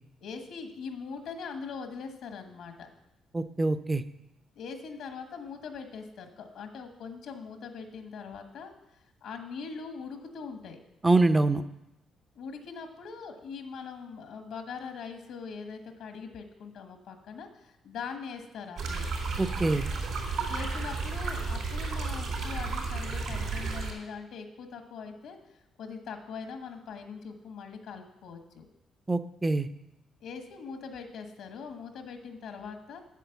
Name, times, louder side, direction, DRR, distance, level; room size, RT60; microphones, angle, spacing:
voice 1, 0.2-2.9 4.5-8.7 9.2-10.8 12.3-19.1 20.5-28.7 30.2-33.0, left 5 dB, 80° left, 6 dB, 1.3 m, -42 dB
voice 2, 3.3-4.0 11.0-11.6 19.4-19.9 29.1-29.7, right 2 dB, 20° right, 11 dB, 0.6 m, -25 dB
sound 1, 18.8-23.9, right 4 dB, 85° right, 3.7 m, -32 dB
8.4 x 7.4 x 7.1 m, 0.90 s
cardioid pair, 90°, 0 cm